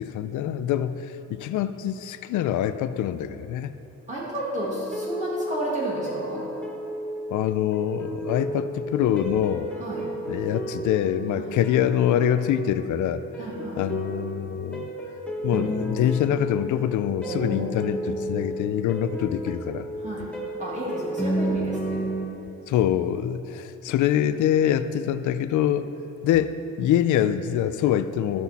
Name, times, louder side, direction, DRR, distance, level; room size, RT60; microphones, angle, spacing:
voice 1, 0.0-3.7 7.3-9.7 10.3-13.2 13.8-14.9 15.4-19.9 22.7-25.9 26.2-28.4, left 10 dB, 85° left, 12 dB, 0.5 m, -25 dB
voice 2, 4.1-6.4 9.8-10.0 11.4-11.5 13.4-13.8 17.2-18.6 20.0-20.3 20.6-22.1, right 1 dB, 25° right, -7 dB, 2.0 m, -32 dB
sound 1, 4.4-22.3, right 1 dB, 5° left, 1.2 m, -32 dB
14.0 x 6.1 x 4.2 m, 2.9 s
cardioid pair, 145°, 29 cm